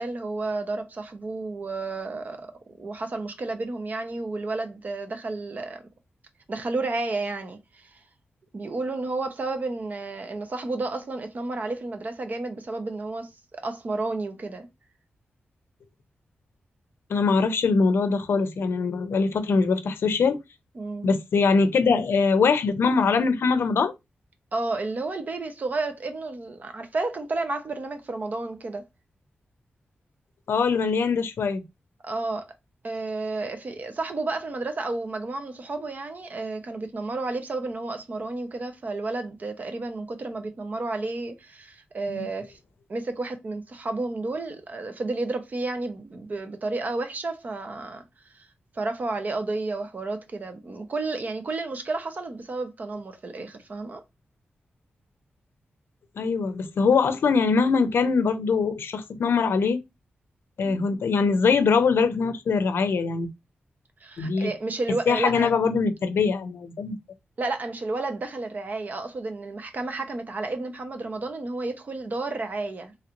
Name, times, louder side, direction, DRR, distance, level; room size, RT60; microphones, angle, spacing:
voice 1, 0.0-5.8 6.5-8.0 8.5-14.7 20.7-21.1 24.5-28.8 32.0-32.5 32.8-42.6 42.9-48.1 48.3-48.5 48.7-54.0 60.6-60.8 64.0-65.5 67.4-72.9, right 3 dB, 45° right, 0.7 m, -31 dB
voice 2, 17.1-20.4 21.0-23.9 30.5-31.6 42.1-42.2 56.2-59.8 60.6-63.3 64.2-64.5 65.1-67.0, left 5 dB, 80° left, 0.5 m, -22 dB
3.1 x 2.5 x 2.9 m
wide cardioid pair, 105°, 4 cm